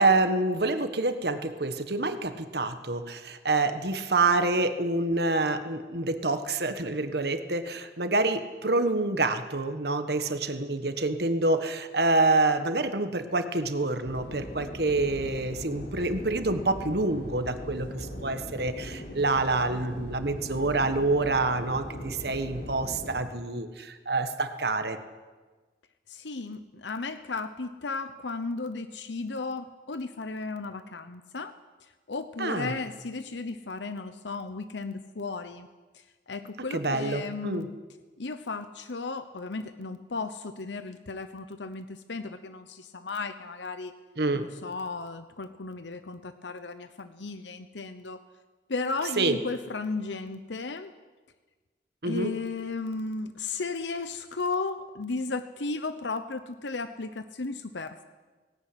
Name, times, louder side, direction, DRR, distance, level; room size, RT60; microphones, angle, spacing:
voice 1, 0.0-25.0 32.4-32.7 36.7-37.7 44.2-44.5 49.2-49.4 52.0-52.3, right 2 dB, 60° right, 9 dB, 1.5 m, -27 dB
sound 1, 14.0-23.2, equal, 55° left, 4.7 m, -40 dB
voice 2, 26.1-31.6 32.1-35.7 35.9-37.8 38.2-43.9 44.3-48.2 48.7-50.9 52.0-58.0, left 3 dB, 80° left, 10 dB, 0.9 m, -35 dB
18.0 x 17.5 x 9.9 m, 1.3 s
head